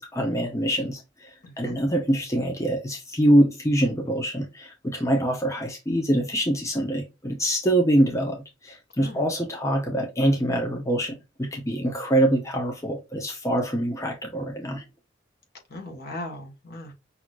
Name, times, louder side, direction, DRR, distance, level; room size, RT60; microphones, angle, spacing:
voice 1, 0.0-1.3 1.6-8.4 8.6-14.8, right 1 dB, 15° left, 0.8 m, -24 dB
voice 2, 1.4-1.8 9.0-9.2 15.7-16.9, left 1 dB, 55° left, 1.4 m, -38 dB
6.0 x 2.8 x 2.5 m
head